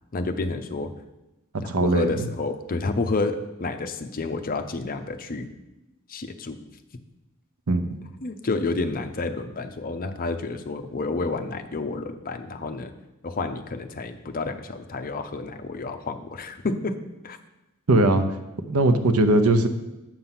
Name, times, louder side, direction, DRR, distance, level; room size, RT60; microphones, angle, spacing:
voice 1, 0.1-0.9 1.8-5.5 6.1-6.6 8.2-12.9 13.2-16.9 17.2-17.4, left 3 dB, 40° left, 8 dB, 0.6 m, -29 dB
voice 2, 1.7-2.1 7.7-8.0 17.9-18.3 18.7-19.7, right 2 dB, 85° right, 9 dB, 0.8 m, -19 dB
7.7 x 5.6 x 5.8 m, 0.98 s
head